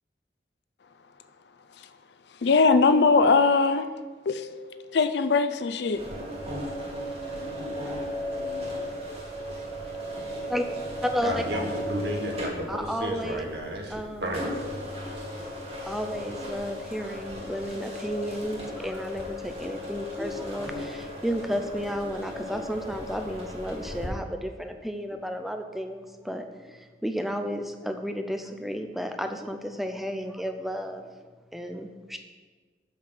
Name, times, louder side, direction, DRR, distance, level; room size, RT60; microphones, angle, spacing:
voice 1, 2.4-3.9 4.3-6.0, left 4 dB, 70° left, 11 dB, 0.4 m, -21 dB
sound 1, 6.0-24.1, left 1 dB, 35° right, 1.7 m, -36 dB
voice 2, 10.1-10.7 11.0-11.4 12.7-13.4 13.9-14.5 15.8-31.1 31.5-32.2, equal, ahead, 6 dB, 0.5 m, -32 dB
voice 3, 11.2-14.4, equal, 65° right, 1 dB, 1.5 m, -32 dB
6.6 x 6.0 x 6.0 m, 1.4 s
head